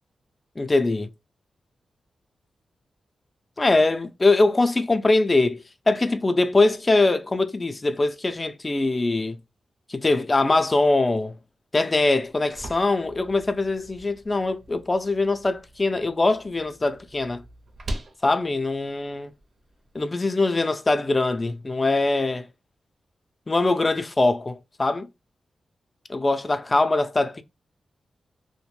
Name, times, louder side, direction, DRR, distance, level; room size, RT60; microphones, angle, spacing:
voice 1, 0.6-1.1 3.6-9.4 9.9-11.4 11.7-17.4 18.2-19.3 19.9-22.5 23.5-25.1 26.1-27.4, left 2 dB, 25° left, 0.3 m, -22 dB
sound 1, 12.1-20.0, right 1 dB, 55° right, 0.5 m, -42 dB
2.4 x 2.1 x 3.1 m
wide cardioid pair, 95°, 0 cm